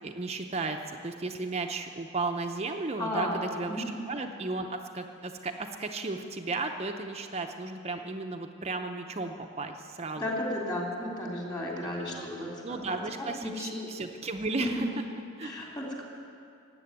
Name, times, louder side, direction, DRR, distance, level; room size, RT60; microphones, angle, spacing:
voice 1, 0.0-10.2 12.4-14.9 15.4-15.5, right 3 dB, 30° right, 4 dB, 0.7 m, -34 dB
voice 2, 3.0-3.9 10.2-13.9 15.4-16.0, left 1 dB, 20° left, -2 dB, 3.1 m, -34 dB
16.0 x 8.5 x 9.7 m, 2.5 s
head